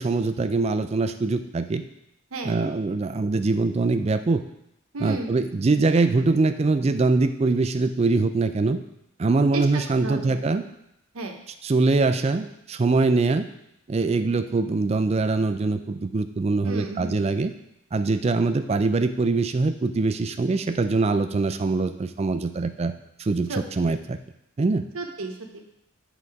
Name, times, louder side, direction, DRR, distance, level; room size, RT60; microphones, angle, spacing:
voice 1, 0.0-1.8 2.4-4.4 5.0-8.8 9.2-10.6 11.6-13.5 13.9-17.5 17.9-22.9 23.2-24.2 24.6-24.8, right 3 dB, 30° right, 9 dB, 0.3 m, -23 dB
voice 2, 2.3-2.7 4.9-5.3 9.5-10.4 11.1-11.4 16.6-17.2 23.5-23.6 24.9-25.6, right 3 dB, 85° right, 4 dB, 0.9 m, -33 dB
7.7 x 4.0 x 4.7 m, 0.81 s
head